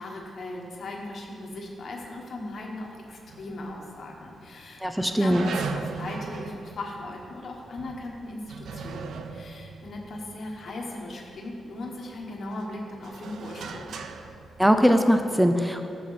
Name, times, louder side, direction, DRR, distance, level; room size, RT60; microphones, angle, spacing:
voice 1, 0.0-14.0, left 2 dB, 50° left, 0 dB, 1.3 m, -38 dB
sound 1, 3.3-4.1 4.4-4.5 5.2-11.3 11.8-15.2, right 5 dB, 70° right, 0.5 m, -39 dB
voice 2, 4.8-5.5 14.6-15.9, equal, ahead, 6 dB, 0.4 m, -21 dB
11.5 x 7.6 x 4.1 m, 2.5 s
wide cardioid pair, 150°, 0 cm